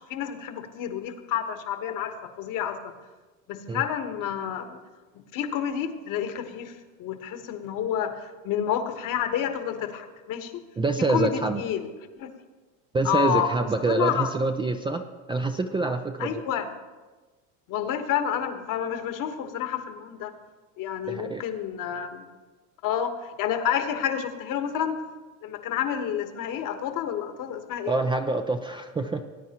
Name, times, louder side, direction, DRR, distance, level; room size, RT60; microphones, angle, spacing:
voice 1, 0.0-2.9 3.5-4.8 5.3-6.7 7.0-8.2 8.4-10.5 11.1-11.8 12.2-12.3 13.0-13.5 13.9-14.3 16.2-16.7 17.7-20.3 20.8-22.2 22.8-23.1 23.4-25.0 25.4-27.9, left 9 dB, 50° left, 8 dB, 1.2 m, -29 dB
voice 2, 10.8-11.6 12.9-16.4 21.1-21.4 27.8-29.2, right 3 dB, 10° right, 6 dB, 0.4 m, -26 dB
19.5 x 9.5 x 2.9 m, 1.3 s
supercardioid pair, 105°, 41 cm